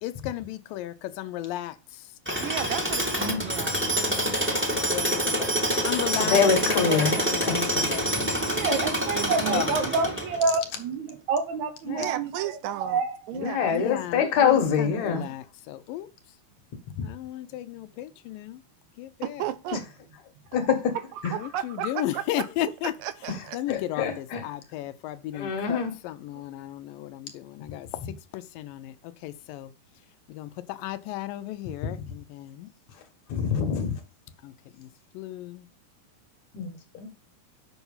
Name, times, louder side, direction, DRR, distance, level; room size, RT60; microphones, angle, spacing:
voice 1, 0.0-2.1 4.0-4.4 4.7-5.5 5.8-8.3 9.5-9.8 13.7-16.1 17.0-18.6 19.0-19.4 21.3-22.9 23.5-29.7 30.3-32.7 34.4-34.9 35.1-35.7, left 14 dB, 80° left, 2.2 m, -35 dB
Tools, 2.3-10.6, equal, 5° right, 1.2 m, -26 dB
voice 2, 2.4-3.8 4.4-4.6 9.1-9.6 12.0-13.0 13.3-13.7 19.2-19.8 21.3-21.6 22.0-22.4 23.0-23.6 26.3-26.4, right 12 dB, 80° right, 2.1 m, -34 dB
voice 3, 6.2-7.9 11.9-12.0 13.3-15.2 17.0-17.1 20.5-20.6 21.2-21.3 23.7-24.4 25.3-25.9 33.3-34.0 36.5-37.1, left 6 dB, 60° left, 2.3 m, -25 dB
voice 4, 8.4-13.3, right 4 dB, 60° right, 2.2 m, -28 dB
8.0 x 5.9 x 5.5 m
omnidirectional pair, 4.3 m